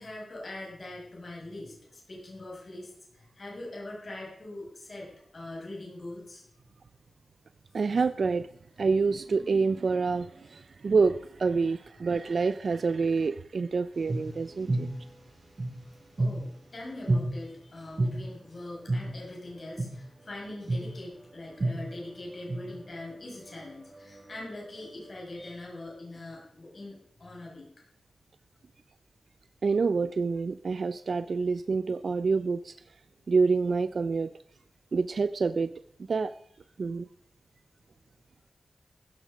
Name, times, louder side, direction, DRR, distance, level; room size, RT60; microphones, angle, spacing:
voice 1, 0.0-6.4 11.6-11.7 16.2-27.7, left 2 dB, 40° left, -3 dB, 6.1 m, -42 dB
voice 2, 7.7-8.5 8.8-14.9 29.6-32.7 33.3-34.3 34.9-35.7 36.1-36.3 36.8-37.1, right 4 dB, 55° right, 13 dB, 0.5 m, -27 dB
sound 1, 13.9-16.6 17.1-17.2 18.0-18.1 18.9-19.0 19.8-19.9 20.7-20.8 21.6-23.2 23.5-25.1, right 2 dB, 35° right, 5.2 m, -30 dB
15.5 x 14.0 x 5.0 m, 0.69 s
wide cardioid pair, 150°, 0 cm